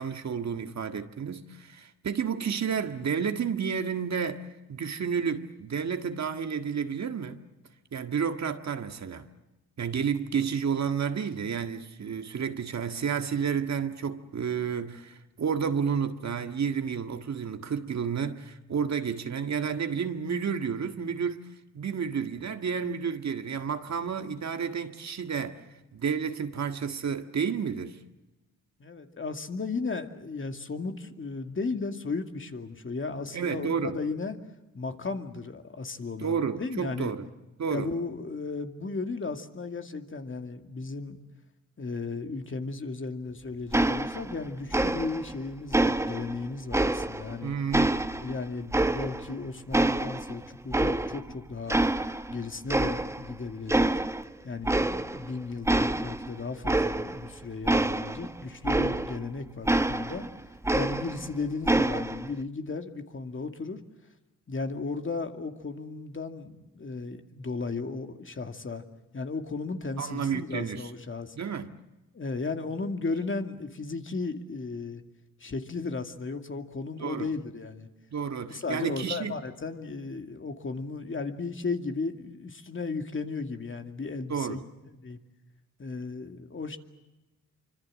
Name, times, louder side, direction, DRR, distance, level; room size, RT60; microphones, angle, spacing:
voice 1, 0.0-7.4 7.9-9.2 9.8-21.4 21.7-25.6 25.9-28.0 33.3-34.0 36.2-37.3 37.6-37.9 47.4-48.0 70.0-70.9 71.3-71.7 77.0-77.3 78.1-79.3 84.3-84.6, right 6 dB, 60° right, 1.8 m, -31 dB
voice 2, 28.8-34.4 34.7-37.1 37.7-41.2 41.8-47.5 48.2-51.8 52.3-53.9 54.4-60.3 60.7-63.8 64.5-68.8 69.1-71.4 72.1-75.0 75.4-77.9 78.5-84.6 85.0-85.2 85.8-86.8, left 4 dB, 40° left, 2.3 m, -35 dB
sound 1, 43.7-44.4 44.7-45.4 45.7-47.4 47.7-49.4 49.7-51.3 51.7-52.4 52.7-53.3 53.7-54.3 54.6-55.3 55.7-59.3 59.7-61.3 61.7-62.3, right 2 dB, 10° right, 0.9 m, -27 dB
26.0 x 25.0 x 7.6 m
cardioid pair, 75°, 31 cm